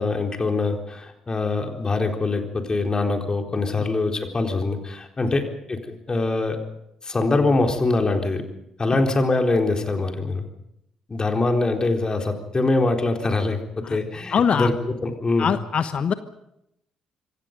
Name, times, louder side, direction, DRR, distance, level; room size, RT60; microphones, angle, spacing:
voice 1, 0.0-6.6 7.0-8.4 8.8-10.4 11.1-14.7 15.0-15.5, left 3 dB, 30° left, 3 dB, 4.0 m, -23 dB
voice 2, 14.3-14.7 15.4-16.1, left 7 dB, 50° left, 12 dB, 1.2 m, -22 dB
26.5 x 23.0 x 5.3 m, 0.81 s
figure-of-eight pair, 45°, 3 cm